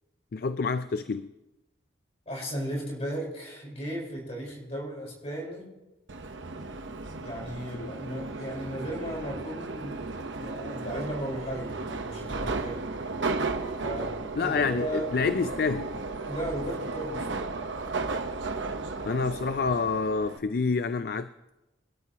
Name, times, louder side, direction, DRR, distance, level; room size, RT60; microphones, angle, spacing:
voice 1, 0.3-1.3 7.8-7.9 14.4-15.9 19.0-21.3, left 4 dB, 50° left, 12 dB, 0.4 m, -28 dB
voice 2, 2.3-5.7 7.2-10.0 10.3-12.9 13.8-14.1 14.4-15.1 16.2-17.5, equal, 35° left, -2 dB, 4.7 m, -35 dB
Subway metro underground, 6.1-20.4, right 3 dB, 80° right, 1.0 m, -34 dB
24.5 x 12.5 x 3.0 m, 1.0 s
head